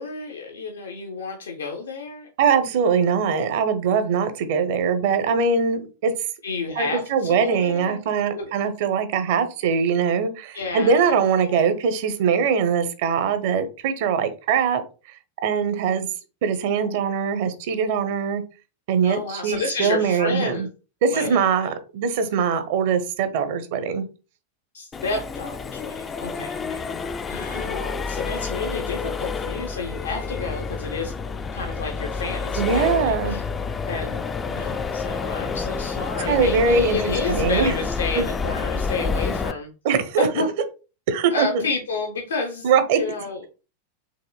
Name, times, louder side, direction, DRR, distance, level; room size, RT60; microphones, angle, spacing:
voice 1, 0.0-2.3 6.4-8.0 8.3-8.5 10.5-11.6 16.7-17.1 19.0-20.7 21.1-21.5 24.7-26.8 27.3-31.1 31.5-33.4 33.8-39.7 40.2-40.5 41.3-43.5, left 3 dB, 65° left, 2 dB, 0.6 m, -30 dB
voice 2, 2.4-6.1 6.8-14.8 15.4-16.1 16.4-18.4 18.9-20.7 21.0-24.0 32.6-33.4 36.3-37.7 38.1-38.2 39.8-40.3 41.1-41.6 42.6-43.0, right 6 dB, 50° right, 10 dB, 0.7 m, -22 dB
Accelerating revving vroom, 24.9-39.5, left 5 dB, 20° left, 0.3 m, -29 dB
4.9 x 3.1 x 2.2 m, 0.33 s
figure-of-eight pair, 90°, 0 cm